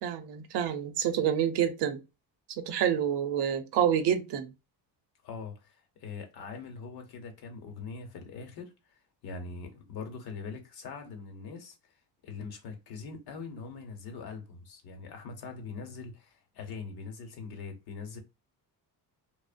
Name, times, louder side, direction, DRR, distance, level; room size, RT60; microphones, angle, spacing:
voice 1, 0.0-2.0 2.6-4.5, right 9 dB, 75° right, 0.6 m, -28 dB
voice 2, 5.2-8.7 9.2-11.7 12.2-18.2, left 4 dB, 60° left, 0.8 m, -42 dB
2.8 x 2.0 x 2.4 m
cardioid pair, 165°, 42 cm